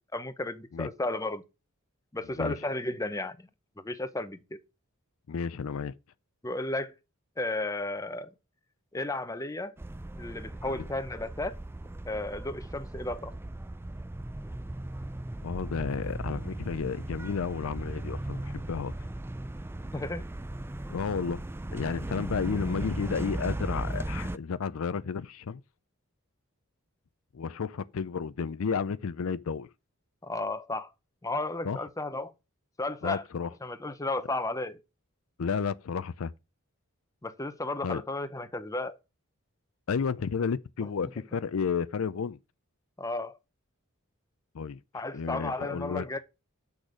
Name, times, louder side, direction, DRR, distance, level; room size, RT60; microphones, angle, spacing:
voice 1, 0.1-1.4 2.1-3.5 3.8-4.6 6.4-6.9 7.4-8.3 8.9-9.7 10.1-11.6 12.1-13.3 19.8-20.2 30.2-30.9 31.2-32.3 32.8-33.2 33.6-34.8 37.2-39.0 43.0-43.4 44.9-46.2, left 2 dB, 15° left, 0.7 m, -33 dB
voice 2, 5.3-5.9 10.7-10.8 15.4-18.9 20.9-21.4 21.7-25.6 27.3-29.7 31.6-31.8 33.0-33.5 35.4-36.3 37.8-38.0 39.9-42.4 44.5-44.8 45.1-46.1, left 5 dB, 70° left, 0.5 m, -32 dB
sound 1, 9.8-24.4, right 1 dB, 10° right, 0.4 m, -37 dB
8.4 x 6.3 x 4.9 m
head